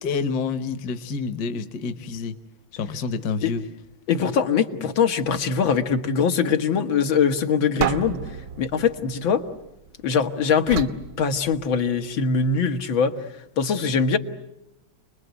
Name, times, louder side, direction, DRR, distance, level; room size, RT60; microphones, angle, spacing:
voice 1, 0.0-2.4 2.7-3.6, left 5 dB, 60° left, 10 dB, 1.6 m, -28 dB
voice 2, 4.1-9.4 10.0-10.9 11.2-13.1 13.6-14.2, left 6 dB, 85° left, 6 dB, 2.2 m, -22 dB
sound 1, 7.8-10.0 10.7-12.0, right 7 dB, 80° right, 1.9 m, -31 dB
29.5 x 21.0 x 8.2 m, 0.90 s
omnidirectional pair, 2.1 m